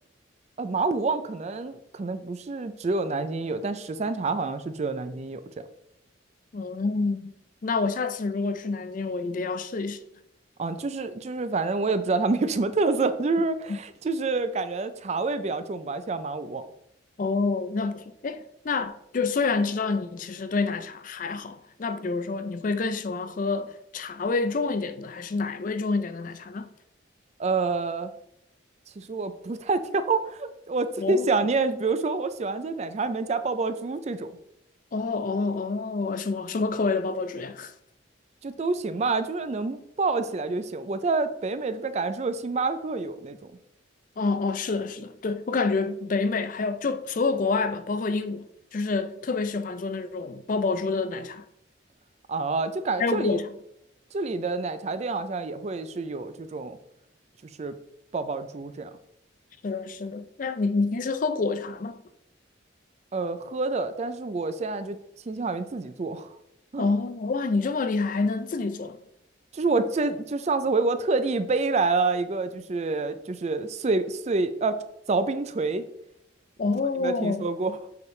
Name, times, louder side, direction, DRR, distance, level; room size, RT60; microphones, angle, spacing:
voice 1, 0.6-5.4 10.6-16.7 27.4-28.1 29.0-34.3 38.4-43.4 52.3-53.4 54.1-56.8 57.6-57.8 58.1-58.9 63.1-65.0 65.3-66.4 66.7-66.9 69.5-74.8 75.1-75.8 77.0-77.8, right 3 dB, 35° right, 0.4 m, -27 dB
voice 2, 6.5-7.3 7.6-10.0 13.7-13.8 17.2-26.7 31.0-31.3 34.9-37.7 44.2-48.5 48.7-51.4 53.0-53.5 59.6-62.0 66.8-69.0 76.6-77.5, left 4 dB, 45° left, 0.4 m, -28 dB
7.0 x 4.8 x 3.2 m
head